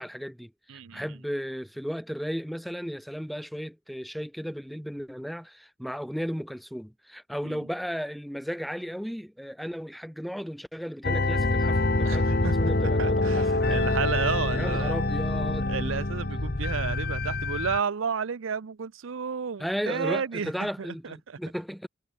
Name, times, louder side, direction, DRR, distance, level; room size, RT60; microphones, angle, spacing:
voice 1, 0.0-14.0 14.5-15.7 19.6-21.9, equal, ahead, 1.7 m, -35 dB
voice 2, 0.7-1.0 7.4-7.6 12.0-12.5 13.0-14.9 15.7-20.7 21.0-21.4, right 6 dB, 80° right, 0.6 m, -32 dB
sound 1, 11.0-17.8, left 2 dB, 50° left, 1.3 m, -26 dB
head